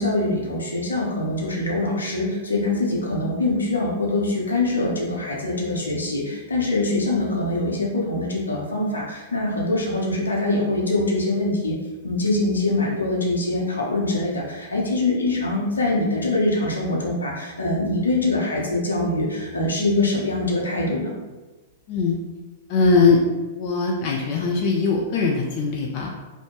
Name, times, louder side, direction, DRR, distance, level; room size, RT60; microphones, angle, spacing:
voice 1, 0.0-11.8 12.0-21.1, left 2 dB, 75° left, -2 dB, 0.7 m, -24 dB
voice 2, 21.9-22.2 22.7-23.2 23.6-26.2, left 4 dB, 40° left, -2 dB, 0.3 m, -20 dB
2.6 x 2.0 x 3.1 m, 1.2 s
figure-of-eight pair, 100°, 0 cm